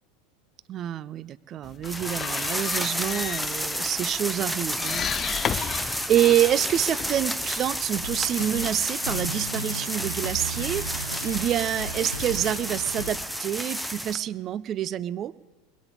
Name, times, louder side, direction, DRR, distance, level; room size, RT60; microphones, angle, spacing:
voice 1, 0.7-15.3, right 11 dB, 35° right, 19 dB, 0.4 m, -27 dB
sound 1, 1.6-8.1, left 8 dB, 30° left, 0.4 m, -34 dB
sound 2, 1.8-14.2, equal, ahead, 0.7 m, -31 dB
sound 3, 8.0-13.2, right 2 dB, 90° right, 1.2 m, -36 dB
21.0 x 7.3 x 8.2 m, 1.2 s
figure-of-eight pair, 80°, 0 cm